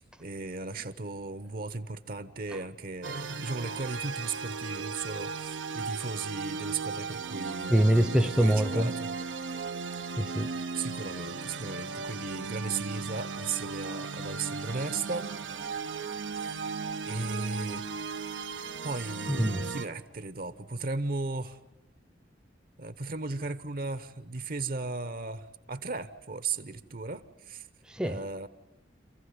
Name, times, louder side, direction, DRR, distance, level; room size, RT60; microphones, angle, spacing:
voice 1, 0.0-7.8 8.2-9.1 10.7-15.3 16.3-16.7 17.1-18.1 18.8-21.6 22.8-27.6 28.0-28.5, right 3 dB, 55° right, 1.0 m, -36 dB
sound 1, 3.0-19.9, right 5 dB, 90° right, 1.0 m, -36 dB
voice 2, 7.7-8.9 10.2-10.5 19.3-19.7 27.9-28.2, right 1 dB, 5° right, 0.7 m, -24 dB
27.0 x 15.5 x 9.7 m
head